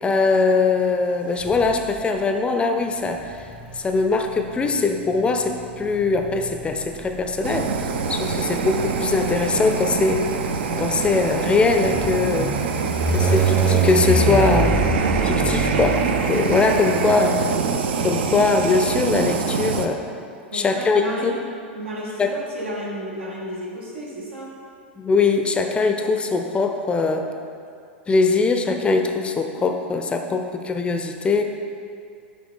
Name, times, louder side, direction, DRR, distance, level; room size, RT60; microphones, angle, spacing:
voice 1, 0.0-3.2 3.8-7.7 8.1-10.3 10.8-12.5 13.1-14.8 15.2-16.0 16.3-17.4 18.0-20.0 20.5-21.3 22.2-22.3 25.0-27.3 28.1-31.4, left 4 dB, 15° left, 5 dB, 0.5 m, -21 dB
sound 1, 1.4-2.1 3.1-16.8, right 3 dB, 20° right, 0.6 m, -26 dB
Fire, 7.4-19.9, right 5 dB, 65° right, 0.5 m, -25 dB
voice 2, 20.5-21.3 21.7-24.6, equal, 85° right, -4 dB, 1.2 m, -33 dB
6.9 x 4.9 x 3.7 m, 2.4 s
figure-of-eight pair, 95°, 6 cm